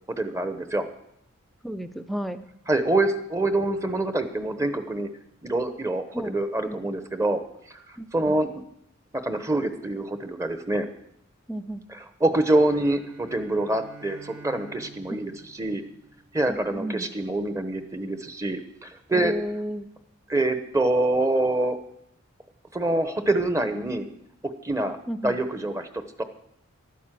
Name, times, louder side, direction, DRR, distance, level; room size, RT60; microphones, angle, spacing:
voice 1, 0.2-0.9 2.7-5.1 5.4-7.4 7.7-8.5 9.1-10.9 11.9-15.8 16.3-19.3 20.3-21.8 22.7-24.1 24.6-25.0 25.2-25.9 26.2-26.3, right 2 dB, 15° right, 10 dB, 0.9 m, -25 dB
voice 2, 1.6-2.4 6.1-6.4 6.6-6.8 8.0-8.4 11.5-11.8 15.2-15.4 16.5-17.1 19.1-19.9 25.1-25.4, equal, ahead, 9 dB, 0.4 m, -33 dB
Bowed string instrument, 12.6-16.8, right 3 dB, 75° right, 2.6 m, -48 dB
12.0 x 9.4 x 7.5 m, 0.76 s
head